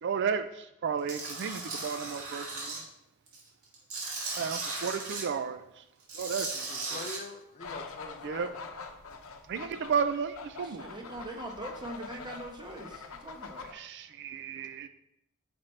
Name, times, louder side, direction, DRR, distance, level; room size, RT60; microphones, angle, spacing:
voice 1, 0.0-2.7 4.4-5.6 6.2-6.5 8.2-8.5 9.5-10.8 13.7-14.9, right 6 dB, 55° right, 10 dB, 0.4 m, -33 dB
Tools, 1.1-2.8 3.3-5.2 6.0-7.2, right 3 dB, 80° right, 2.4 m, -37 dB
voice 2, 6.7-8.6 10.7-10.9, left 3 dB, 35° left, 8 dB, 0.6 m, -44 dB
sound 1, 7.6-13.7, left 4 dB, 70° left, 0.8 m, -45 dB
voice 3, 10.6-13.8, right 1 dB, 20° right, 2 dB, 1.0 m, -42 dB
8.9 x 6.0 x 3.2 m, 0.83 s
head